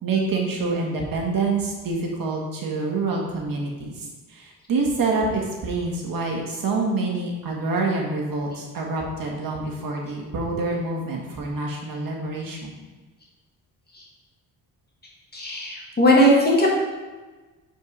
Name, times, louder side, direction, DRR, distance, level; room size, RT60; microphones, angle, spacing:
voice 1, 0.0-12.7, right 3 dB, 60° right, 0 dB, 1.7 m, -26 dB
voice 2, 15.3-16.7, equal, 25° left, -3 dB, 2.0 m, -18 dB
5.3 x 4.6 x 5.4 m, 1.3 s
cardioid pair, 95°, 38 cm